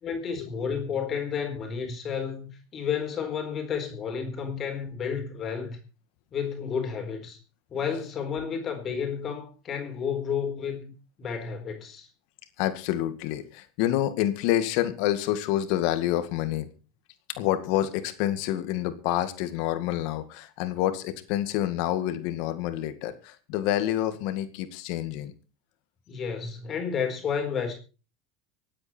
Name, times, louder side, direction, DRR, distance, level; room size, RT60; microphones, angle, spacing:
voice 1, 0.0-5.8 6.3-7.4 7.7-10.9 11.2-12.1 26.1-27.8, left 6 dB, 35° left, 4.2 m, -31 dB
voice 2, 12.6-16.7 17.4-25.3, left 13 dB, 65° left, 2.0 m, -28 dB
24.5 x 8.7 x 4.4 m
supercardioid pair, 100°, 0 cm